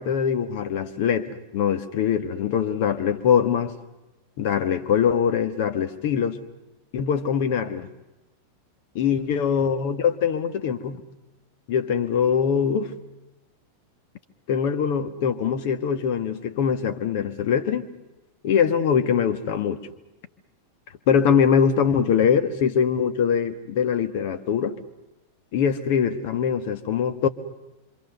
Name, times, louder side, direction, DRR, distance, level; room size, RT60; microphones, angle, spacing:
voice 1, 0.0-3.7 4.4-6.4 6.9-7.9 8.9-11.0 11.7-12.9 14.5-17.9 18.4-19.8 21.1-24.7 25.5-27.3, left 7 dB, 50° left, 10 dB, 1.5 m, -23 dB
26.5 x 26.0 x 6.8 m, 1.0 s
figure-of-eight pair, 90°, 0 cm